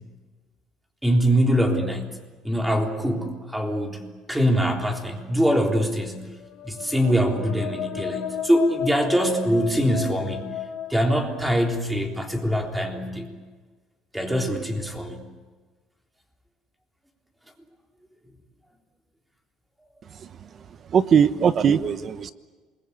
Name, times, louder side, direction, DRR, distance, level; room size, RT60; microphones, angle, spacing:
voice 1, 1.0-2.1 2.4-6.2 6.6-10.5 10.9-13.3 14.1-15.2, equal, 5° right, 3 dB, 3.5 m, -23 dB
sound 1, 6.4-12.1, left 9 dB, 55° left, 1.8 m, -34 dB
voice 2, 20.9-22.3, right 7 dB, 35° right, 13 dB, 1.0 m, -19 dB
27.5 x 21.5 x 8.5 m, 1.4 s
cardioid pair, 140°, 0 cm